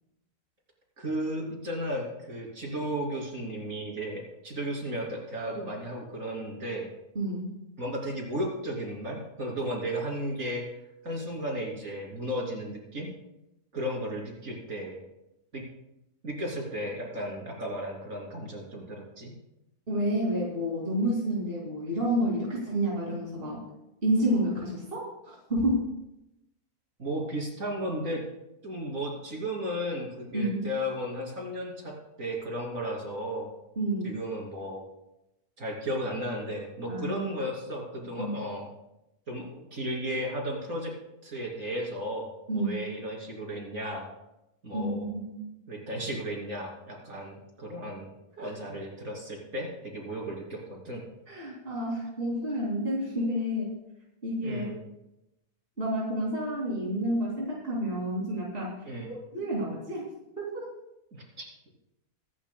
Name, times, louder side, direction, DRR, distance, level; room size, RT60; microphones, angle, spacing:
voice 1, 1.0-6.9 7.8-10.6 11.0-13.1 13.7-15.0 15.5-15.6 16.2-19.3 27.0-28.2 28.6-31.9 32.2-33.5 34.0-34.8 35.6-38.7 39.3-40.9 41.2-44.1 44.6-45.0 45.7-48.1 48.4-51.0 54.4-54.8 58.8-59.1 61.1-61.5, equal, 60° right, -1 dB, 3.4 m, -34 dB
voice 2, 7.1-7.5 19.9-23.6 24.0-25.8 30.3-30.6 33.8-34.2 36.9-37.2 38.2-38.3 42.5-42.8 44.7-45.5 48.4-48.5 51.3-53.7 54.2-54.7 55.8-58.8 59.3-60.1 60.4-60.6, right 1 dB, 40° right, -5 dB, 2.9 m, -29 dB
24.0 x 11.0 x 2.3 m, 0.89 s
omnidirectional pair, 1.6 m